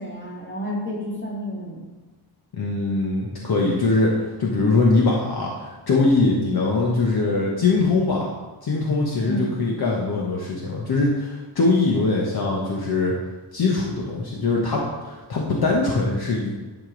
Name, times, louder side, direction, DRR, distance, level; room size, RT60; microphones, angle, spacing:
voice 1, 0.0-1.8 9.2-9.6, equal, 25° left, -4 dB, 2.1 m, -30 dB
voice 2, 2.6-8.3 8.6-13.1 13.5-16.5, left 3 dB, 55° left, -3 dB, 1.1 m, -22 dB
11.0 x 5.1 x 3.9 m, 1.3 s
wide cardioid pair, 160°, 46 cm